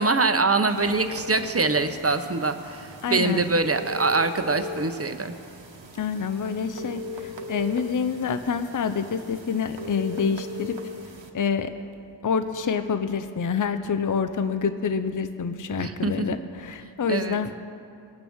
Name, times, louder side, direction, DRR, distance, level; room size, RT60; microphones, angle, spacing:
voice 1, 0.0-5.3 15.8-16.3 17.1-17.4, right 3 dB, 30° right, 8 dB, 0.8 m, -24 dB
sound 1, 0.7-11.3, left 1 dB, 80° right, 1.2 m, -39 dB
voice 2, 3.0-3.4 6.0-10.8 11.3-11.8 12.2-17.5, left 6 dB, 45° left, 10 dB, 0.6 m, -27 dB
21.0 x 8.9 x 3.6 m, 2.6 s
wide cardioid pair, 65°, 45 cm